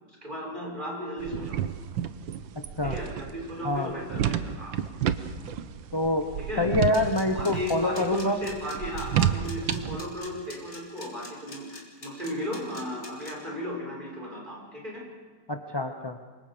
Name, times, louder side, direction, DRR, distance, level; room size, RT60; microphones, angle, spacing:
voice 1, 0.1-1.6 2.8-4.8 6.4-6.7 7.3-15.0, equal, 25° right, -2 dB, 6.4 m, -35 dB
sound 1, 1.2-10.1, right 9 dB, 90° right, 1.6 m, -31 dB
voice 2, 5.9-6.3 6.6-8.4 15.5-16.2, left 2 dB, 25° left, 5 dB, 0.5 m, -26 dB
sound 2, 6.9-13.3, left 2 dB, 45° left, 4.1 m, -44 dB
28.0 x 24.5 x 5.1 m, 1.4 s
omnidirectional pair, 2.0 m